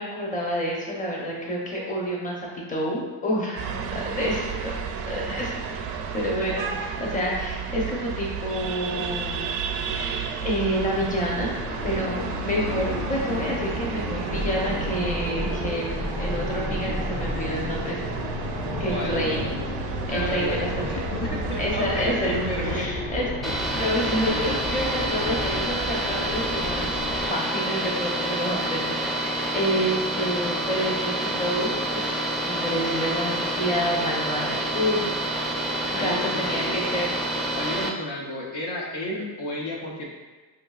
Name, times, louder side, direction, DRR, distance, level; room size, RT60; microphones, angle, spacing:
voice 1, 0.0-4.7 5.1-5.6 6.1-9.6 9.8-11.6 11.8-18.0 18.8-19.5 20.1-21.0 21.6-22.3 22.6-27.0 27.3-35.2 35.7-37.1, equal, 20° left, -3 dB, 0.8 m, -28 dB
sound 1, 3.6-22.9, right 6 dB, 90° right, 0.5 m, -33 dB
sound 2, 11.3-27.3, left 1 dB, 40° left, 1.2 m, -32 dB
voice 2, 18.9-19.3 20.1-23.0 35.9-36.8 37.5-40.0, left 1 dB, 65° left, -1 dB, 0.8 m, -32 dB
sound 3, 23.4-37.9, right 1 dB, ahead, 0.4 m, -28 dB
5.2 x 2.8 x 2.4 m, 1.3 s
cardioid pair, 100°, 43 cm